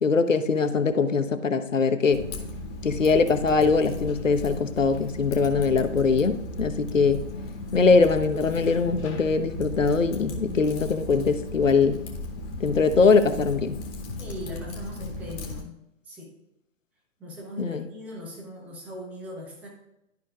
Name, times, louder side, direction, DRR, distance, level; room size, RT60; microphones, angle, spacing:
voice 1, 0.0-2.3 2.8-7.3 7.7-12.0 12.6-13.8 17.6-17.9, left 4 dB, 75° left, 8 dB, 0.9 m, -22 dB
Typing, 2.1-15.6, left 2 dB, 15° left, 1.0 m, -36 dB
voice 2, 14.2-15.8 16.1-16.3 17.2-19.7, equal, 5° right, -1 dB, 0.6 m, -40 dB
12.0 x 5.1 x 2.4 m, 0.88 s
figure-of-eight pair, 130°, 38 cm